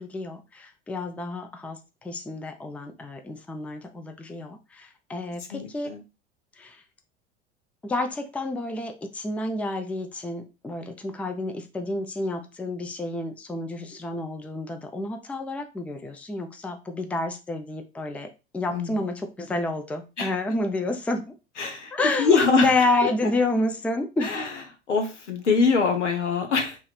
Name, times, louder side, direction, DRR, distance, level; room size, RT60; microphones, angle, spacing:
voice 1, 0.0-5.9 6.6-6.8 7.8-18.3 18.5-21.2 21.9-24.3, left 2 dB, 5° left, 5 dB, 0.4 m, -29 dB
voice 2, 5.5-6.0 18.7-19.0 20.2-20.3 21.6-21.9 22.2-22.7 24.2-24.5 24.9-26.8, left 5 dB, 85° left, 5 dB, 0.9 m, -23 dB
3.2 x 2.5 x 4.1 m, 0.29 s
figure-of-eight pair, 80°, 35 cm